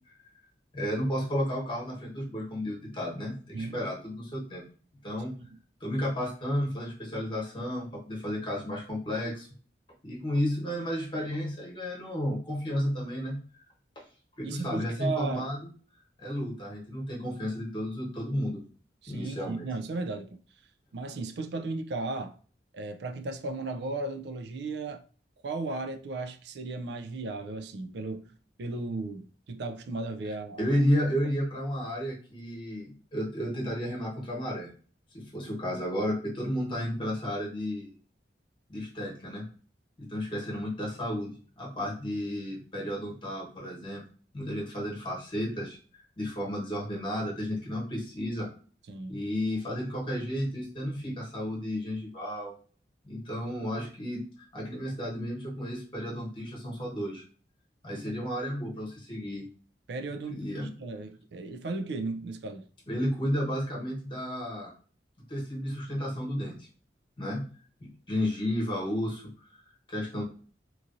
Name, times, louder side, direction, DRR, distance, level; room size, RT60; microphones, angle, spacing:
voice 1, 0.7-4.6 5.0-5.3 5.8-9.5 10.0-13.4 13.9-14.0 14.4-15.6 16.2-18.6 19.1-19.7 30.6-34.7 35.1-37.9 38.7-39.5 40.0-44.0 44.3-45.8 46.2-48.5 49.1-52.5 53.0-57.2 57.8-59.4 60.3-60.7 62.9-64.7 65.3-66.7 67.2-67.4 67.8-69.6 69.9-70.2, equal, 25° left, 1.1 m, -32 dB
voice 2, 14.4-15.5 19.0-20.4 20.9-22.4 22.7-25.0 25.4-28.3 28.6-30.8 48.9-49.2 59.9-62.7, right 3 dB, 70° right, 0.4 m, -35 dB
3.0 x 2.5 x 2.5 m
head